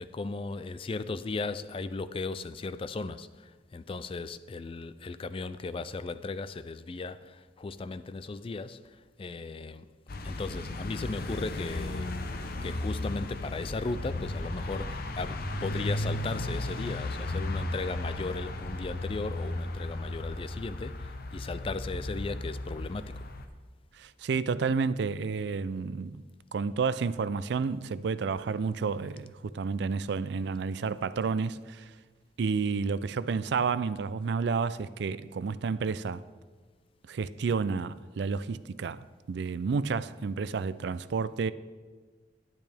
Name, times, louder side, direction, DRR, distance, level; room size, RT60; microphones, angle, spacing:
voice 1, 0.0-9.9 10.2-12.2 12.6-23.3, left 3 dB, 30° left, 0.3 m, -36 dB
sound 1, 10.1-23.5, left 2 dB, 55° left, 0.8 m, -35 dB
voice 2, 24.0-26.2 26.5-31.9 32.4-36.2 37.1-41.5, right 5 dB, 70° right, 0.4 m, -30 dB
12.0 x 10.5 x 3.4 m
head